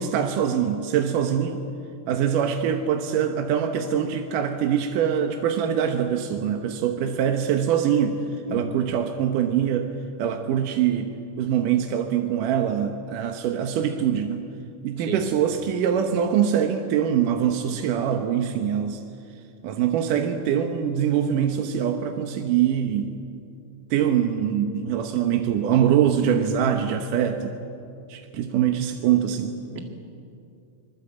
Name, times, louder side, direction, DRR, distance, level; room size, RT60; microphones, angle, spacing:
voice 1, 0.0-1.6 2.1-8.2 8.5-9.9 10.2-14.5 14.8-19.0 19.6-23.1 23.9-27.6 28.1-29.6, right 9 dB, 80° right, 4 dB, 2.7 m, -23 dB
voice 2, 8.5-8.8 15.0-15.3 29.7-29.8, right 2 dB, 40° right, 2 dB, 2.6 m, -33 dB
24.5 x 22.5 x 8.4 m, 2.5 s
omnidirectional pair, 3.7 m